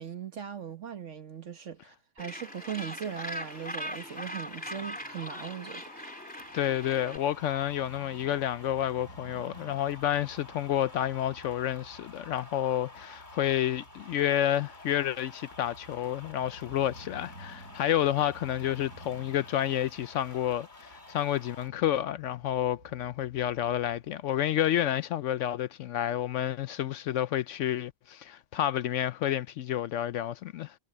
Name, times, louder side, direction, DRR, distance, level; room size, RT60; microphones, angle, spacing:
voice 1, 0.0-5.8, right 8 dB, 60° right, 1.7 m, -39 dB
Gull seagull, 2.2-7.2, equal, 5° left, 3.3 m, -40 dB
sound 1, 2.3-21.7, left 2 dB, 35° left, 3.2 m, -51 dB
Crow / Motorcycle, 6.4-24.3, right 1 dB, 80° right, 8.6 m, -53 dB
voice 2, 6.5-30.7, left 11 dB, 70° left, 0.8 m, -30 dB
omnidirectional pair, 1.4 m